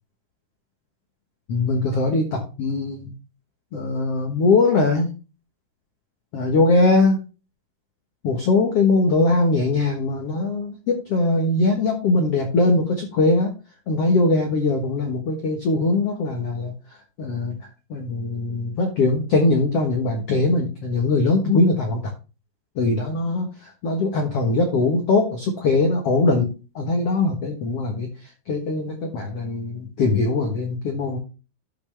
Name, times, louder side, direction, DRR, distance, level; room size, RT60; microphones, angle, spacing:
voice 1, 1.5-3.1 3.7-5.1 6.3-7.2 8.2-13.5 13.9-16.7 17.2-17.5 17.9-22.0 22.8-28.1 28.5-31.2, left 3 dB, 85° left, 3 dB, 1.3 m, -21 dB
12.5 x 6.1 x 3.3 m, 0.33 s
omnidirectional pair, 4.9 m